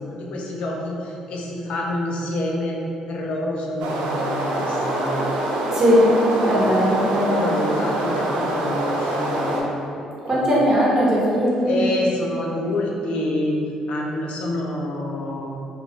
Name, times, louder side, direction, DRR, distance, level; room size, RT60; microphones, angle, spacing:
voice 1, 0.0-2.8 3.1-5.1 6.8-9.7 10.2-10.5 11.7-13.6 13.9-15.5, left 1 dB, 65° left, -1 dB, 0.5 m, -27 dB
sound 1, 3.8-9.6, right 1 dB, 85° right, 0.4 m, -25 dB
voice 2, 5.7-6.1 6.4-7.4 10.2-11.8, equal, 30° right, -6 dB, 0.9 m, -19 dB
2.5 x 2.2 x 3.5 m, 2.7 s
supercardioid pair, 75°, 2 cm